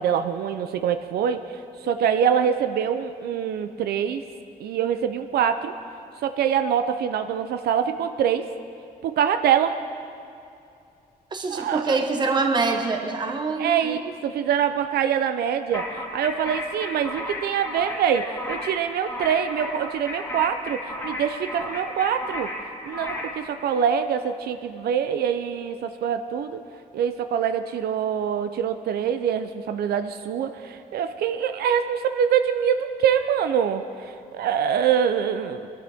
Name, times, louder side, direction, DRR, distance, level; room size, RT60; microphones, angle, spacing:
voice 1, 0.0-4.2 4.6-5.7 6.2-8.5 9.0-9.8 11.5-12.0 13.6-22.5 22.8-26.6 26.9-35.7, right 8 dB, 80° right, 8 dB, 0.6 m, -24 dB
voice 2, 11.3-14.0, right 4 dB, 30° right, 4 dB, 1.1 m, -25 dB
sound 1, 15.7-23.4, left 1 dB, 15° left, 1.6 m, -34 dB
22.0 x 12.0 x 3.5 m, 2.6 s
cardioid pair, 165°, 16 cm